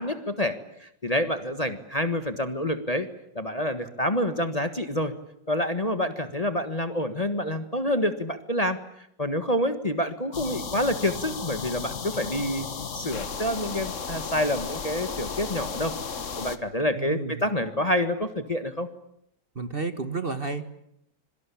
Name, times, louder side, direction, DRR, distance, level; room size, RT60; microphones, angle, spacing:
voice 1, 0.0-3.1 3.3-5.1 5.5-8.8 9.2-12.7 12.9-15.9 16.4-18.9, left 1 dB, 25° left, 9 dB, 1.5 m, -27 dB
sound 1, 10.3-16.6, left 5 dB, 45° left, 1.7 m, -34 dB
voice 2, 16.9-17.4 19.5-20.7, right 3 dB, 35° right, 10 dB, 1.6 m, -31 dB
26.0 x 24.0 x 8.6 m, 0.76 s
omnidirectional pair, 1.9 m